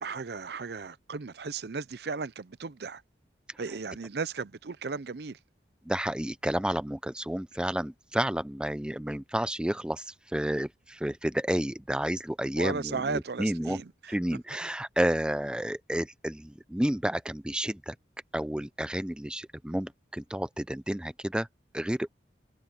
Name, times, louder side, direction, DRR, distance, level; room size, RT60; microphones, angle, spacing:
voice 1, 0.0-3.0 3.6-5.4 12.6-14.2, right 4 dB, 65° right, 0.6 m, -35 dB
voice 2, 5.9-13.8 14.1-17.9 18.3-21.5 21.7-22.1, right 1 dB, 5° right, 0.4 m, -31 dB
head